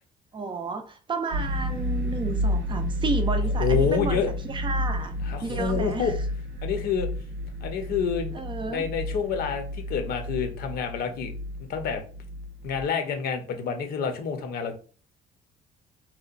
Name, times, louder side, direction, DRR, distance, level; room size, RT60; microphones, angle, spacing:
voice 1, 0.3-5.2 5.4-6.1 8.3-8.9, right 3 dB, 30° right, 0.4 m, -32 dB
sound 1, 1.3-12.8, left 1 dB, 90° right, 0.6 m, -30 dB
voice 2, 3.6-4.3 5.2-6.1 6.6-7.1 7.6-8.4 8.7-11.3 11.7-12.0 12.6-14.7, left 6 dB, 65° left, 0.6 m, -28 dB
2.8 x 2.1 x 2.4 m
cardioid pair, 110°, 17 cm